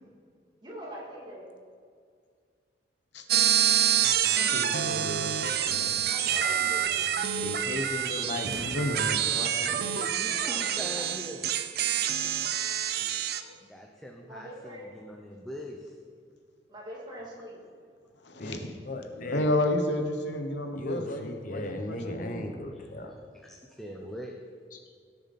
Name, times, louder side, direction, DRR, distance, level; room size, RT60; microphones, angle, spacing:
voice 1, 0.6-1.5 4.8-5.1 6.1-7.0 10.3-11.0 14.2-14.9 16.7-17.6, equal, 25° right, -5 dB, 2.8 m, -43 dB
sound 1, 3.3-13.4, right 9 dB, 60° right, 0.6 m, -27 dB
voice 2, 4.3-5.9 7.2-7.3 8.7-9.9 12.0-12.3 13.0-13.1 13.4-13.5 18.2-18.8 19.2-22.4, left 1 dB, 70° left, 6 dB, 1.1 m, -32 dB
sound 2, 4.5-9.5, right 1 dB, 80° right, 1.8 m, -48 dB
voice 3, 7.4-8.8 9.3-9.7 18.4-19.5 20.7-23.1 24.7-24.8, left 2 dB, 45° left, 4 dB, 0.9 m, -37 dB
voice 4, 10.0-11.4 13.6-16.0 22.8-23.1 23.4-24.4, equal, ahead, 0 dB, 0.7 m, -42 dB
17.5 x 6.9 x 4.2 m, 2.1 s
head